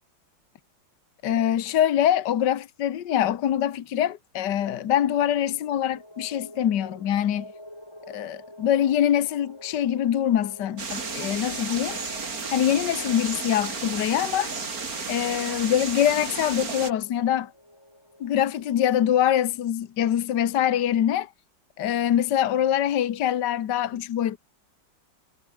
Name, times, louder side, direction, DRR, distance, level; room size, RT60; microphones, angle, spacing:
voice 1, 1.2-7.5 8.1-12.0 12.5-14.5 15.1-17.5 18.2-21.3 21.8-24.4, left 10 dB, 70° left, 1.7 m, -24 dB
sound 1, 4.5-18.9, left 1 dB, 15° left, 6.3 m, -47 dB
sound 2, 10.8-16.9, right 4 dB, 50° right, 3.2 m, -33 dB
omnidirectional pair, 2.0 m